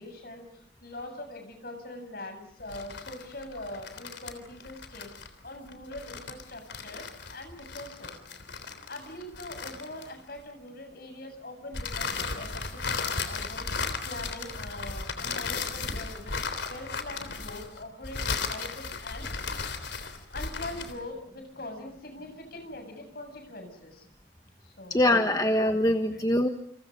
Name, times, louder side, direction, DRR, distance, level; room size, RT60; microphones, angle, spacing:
voice 1, 0.0-8.2 8.9-16.4 16.7-19.3 20.3-24.1 24.6-25.2 25.9-26.2, left 1 dB, 55° left, 6 dB, 7.7 m, -43 dB
sound 1, 2.6-10.4 11.7-21.0, left 4 dB, 70° left, 3.5 m, -35 dB
voice 2, 24.9-26.5, left 1 dB, 20° left, 5 dB, 1.3 m, -23 dB
30.0 x 27.5 x 5.3 m, 0.62 s
head